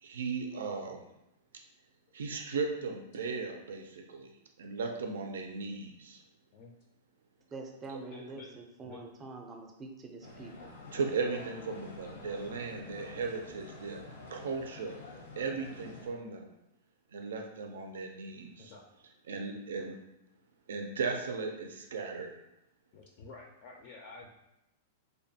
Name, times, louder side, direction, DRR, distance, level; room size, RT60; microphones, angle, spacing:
voice 1, 0.0-1.1 2.1-4.3 4.6-6.2 10.9-14.0 14.3-15.0 15.4-16.5 17.1-18.7 19.3-20.0 20.7-22.3, right 4 dB, 85° right, 3 dB, 0.4 m, -36 dB
voice 2, 7.5-10.7, right 3 dB, 20° right, 2 dB, 0.4 m, -45 dB
voice 3, 8.1-8.5 8.8-9.0 10.6-10.7 18.6-18.9 22.9-24.3, left 4 dB, 50° left, 1 dB, 0.4 m, -50 dB
sound 1, 10.2-16.1, left 2 dB, 85° left, 0.7 m, -48 dB
2.6 x 2.2 x 2.7 m, 0.87 s
hypercardioid pair, 135°, 0 cm